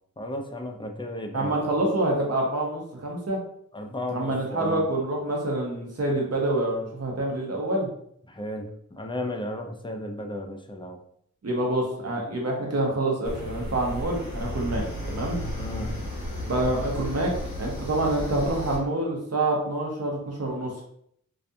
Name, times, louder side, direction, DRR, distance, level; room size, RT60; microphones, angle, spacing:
voice 1, 0.2-1.5 3.7-4.8 8.3-11.0 15.5-15.9, left 1 dB, 15° left, 3 dB, 0.4 m, -34 dB
voice 2, 1.3-3.4 4.1-7.9 11.4-15.4 16.5-17.3 17.6-20.8, right 1 dB, 50° right, -1 dB, 0.7 m, -27 dB
sound 1, 13.2-18.8, left 1 dB, 65° left, 1.0 m, -33 dB
2.4 x 2.3 x 2.6 m, 0.69 s
wide cardioid pair, 45°, 32 cm